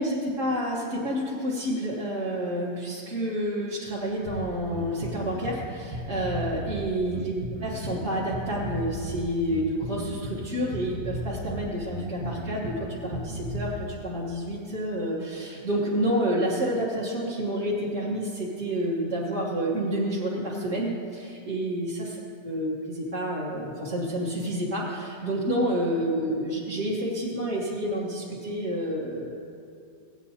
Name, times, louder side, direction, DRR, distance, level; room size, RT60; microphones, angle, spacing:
voice 1, 0.0-7.3 7.6-29.4, equal, 40° right, -7 dB, 1.6 m, -29 dB
Bass guitar, 4.2-13.8, right 1 dB, 80° right, 1.7 m, -35 dB
17.0 x 9.0 x 2.8 m, 2.4 s
omnidirectional pair, 2.0 m